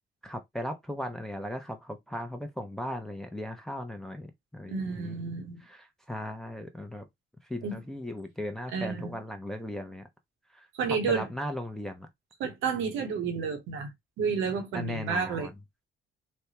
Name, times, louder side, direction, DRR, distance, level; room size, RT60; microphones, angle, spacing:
voice 1, 0.2-5.2 5.7-7.0 7.5-10.1 10.5-12.1 14.7-15.5, equal, ahead, 0.5 m, -37 dB
voice 2, 4.7-5.6 7.6-7.8 8.7-9.1 10.7-11.2 12.4-15.5, right 5 dB, 85° right, 1.0 m, -31 dB
3.3 x 2.2 x 2.8 m
cardioid pair, 90°, 20 cm